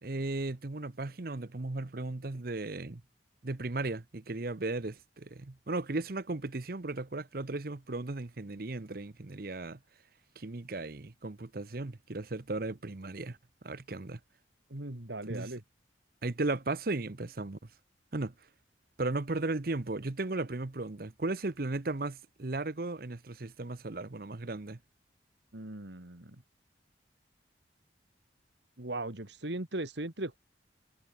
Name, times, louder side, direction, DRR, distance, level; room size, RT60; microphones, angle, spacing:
voice 1, 0.0-3.0 3.4-9.8 10.4-13.4 13.6-14.2 15.3-15.5 16.2-17.6 18.1-18.3 19.0-24.8, right 2 dB, 50° right, 0.9 m, -36 dB
voice 2, 14.7-15.6 25.5-26.4 28.8-30.4, right 2 dB, 70° right, 2.3 m, -38 dB
head